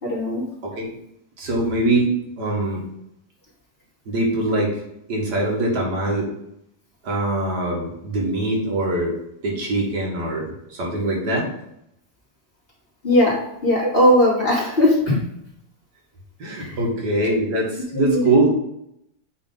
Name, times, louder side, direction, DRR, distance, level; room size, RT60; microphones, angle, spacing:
voice 1, 0.0-0.4 13.0-13.4 13.6-15.2 16.6-16.8 17.9-18.2, left 1 dB, 35° left, -6 dB, 2.6 m, -18 dB
voice 2, 0.6-0.9 1.4-2.1 2.4-2.8 4.1-4.7 5.1-6.3 7.0-9.1 9.4-11.5 13.8-13.9 16.4-18.5, right 2 dB, 75° right, -2 dB, 2.1 m, -22 dB
8.5 x 3.5 x 3.9 m, 0.78 s
omnidirectional pair, 1.8 m